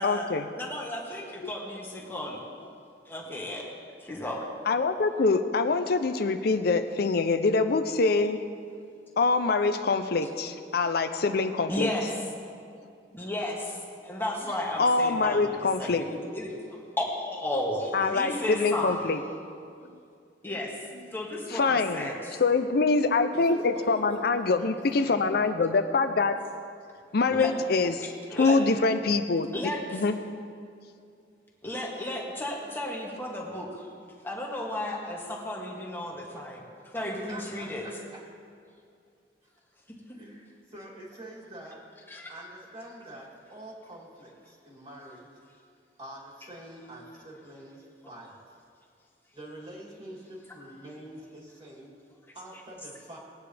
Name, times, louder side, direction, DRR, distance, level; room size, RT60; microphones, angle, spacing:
voice 1, 0.0-0.4 1.4-1.5 4.7-8.4 9.2-11.9 14.8-16.0 17.9-19.2 21.5-22.1 22.4-26.4 27.1-29.5 29.9-30.2, left 4 dB, 60° left, 8 dB, 0.6 m, -25 dB
voice 2, 0.6-2.4 3.0-3.6 4.0-4.4 11.7-12.0 13.1-13.8 14.0-18.9 20.4-20.7 21.1-22.4 27.3-27.5 28.3-28.6 29.5-30.0 31.6-36.6 36.9-37.8 42.1-42.3, left 1 dB, 15° left, -2 dB, 1.6 m, -34 dB
voice 3, 23.3-25.6 37.0-38.2 40.1-41.8 42.3-45.3 46.0-48.3 49.3-51.9 52.3-53.2, right 1 dB, 35° right, -4 dB, 3.0 m, -45 dB
20.0 x 9.0 x 3.4 m, 2.4 s
head